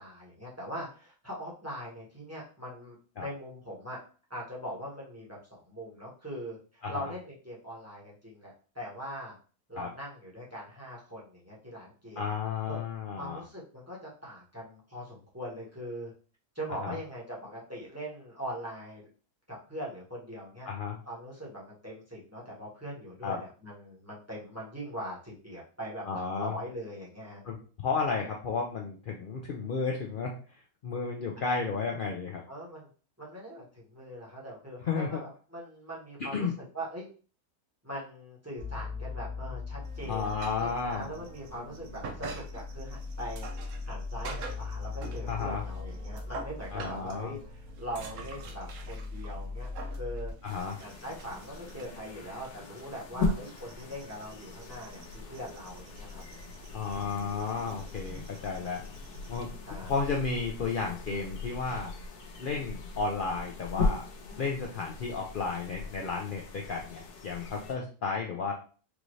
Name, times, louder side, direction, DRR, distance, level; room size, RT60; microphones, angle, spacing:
voice 1, 0.0-4.0 4.3-9.3 9.7-12.3 12.6-12.8 13.2-16.1 16.5-19.1 19.5-20.7 21.1-27.4 32.5-32.9 33.2-36.5 36.7-37.1 37.8-43.5 43.9-50.3 50.8-56.2 59.6-59.9, equal, 10° right, -4 dB, 1.1 m, -41 dB
voice 2, 12.2-13.4 16.8-17.0 20.7-21.0 23.2-23.4 26.0-26.5 27.4-30.3 30.8-32.4 34.8-35.2 36.2-36.5 40.1-41.1 45.3-45.6 46.7-47.3 50.4-50.8 56.7-58.8 59.3-59.5 59.9-61.9 62.4-64.0 64.4-68.5, left 5 dB, 70° left, 0 dB, 0.5 m, -33 dB
sound 1, 38.6-50.3, left 4 dB, 35° right, 1.3 m, -40 dB
sound 2, 39.8-59.4, right 3 dB, 65° right, 0.9 m, -47 dB
sound 3, 50.4-67.7, left 3 dB, 85° left, 1.3 m, -38 dB
4.8 x 2.6 x 3.1 m, 0.38 s
omnidirectional pair, 1.6 m